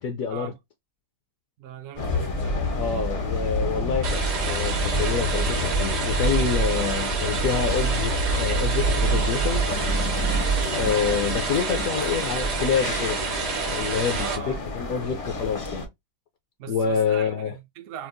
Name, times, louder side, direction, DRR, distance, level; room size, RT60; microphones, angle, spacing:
voice 1, 0.0-0.5 2.7-4.2 4.5-9.7 10.7-13.2 13.6-15.9 16.7-17.6, left 7 dB, 65° left, 1.0 m, -27 dB
voice 2, 1.6-2.8 14.2-14.6 16.6-18.1, right 10 dB, 65° right, 0.8 m, -39 dB
sound 1, 2.0-15.9, right 1 dB, 50° left, 0.4 m, -27 dB
sound 2, 4.0-14.4, right 5 dB, 90° right, 1.5 m, -29 dB
sound 3, 9.7-12.4, left 8 dB, 85° left, 1.2 m, -38 dB
4.4 x 2.0 x 2.5 m
omnidirectional pair, 1.7 m